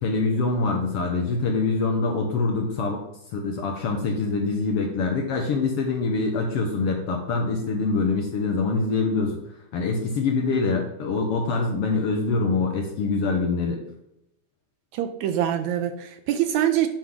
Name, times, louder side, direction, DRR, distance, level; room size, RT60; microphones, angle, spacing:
voice 1, 0.0-3.0 3.3-9.4 9.7-13.8, left 3 dB, 65° left, 2 dB, 1.5 m, -24 dB
voice 2, 14.9-16.9, right 11 dB, 80° right, 8 dB, 1.8 m, -24 dB
9.6 x 5.9 x 3.6 m, 0.82 s
omnidirectional pair, 3.6 m